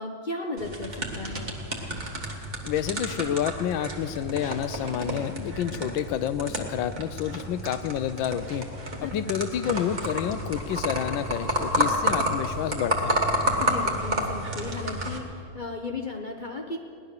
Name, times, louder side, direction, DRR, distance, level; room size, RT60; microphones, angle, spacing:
voice 1, 0.0-1.5 9.0-9.3 13.6-16.8, left 3 dB, 60° left, 3 dB, 0.5 m, -35 dB
sound 1, 0.6-15.2, equal, 25° right, 1.5 m, -30 dB
voice 2, 2.6-8.7 9.0-13.2, left 10 dB, 80° left, 13 dB, 1.4 m, -29 dB
18.0 x 11.0 x 6.6 m, 2.5 s
omnidirectional pair, 2.2 m